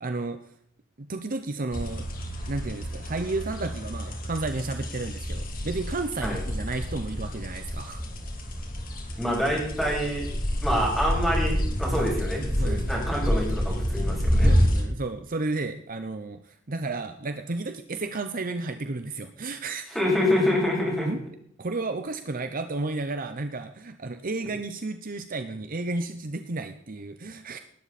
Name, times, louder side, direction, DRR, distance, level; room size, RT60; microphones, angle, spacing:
voice 1, 0.0-0.4 1.0-2.1 2.5-8.0 12.6-12.9 14.4-19.8 21.0-21.2 21.6-27.6, right 3 dB, 45° right, 8 dB, 0.9 m, -32 dB
sound 1, 1.7-14.8, equal, 45° left, 3.1 m, -28 dB
voice 2, 9.2-10.3 10.6-14.5 19.9-21.1, left 1 dB, ahead, -3 dB, 7.0 m, -26 dB
19.0 x 12.5 x 4.3 m, 0.66 s
head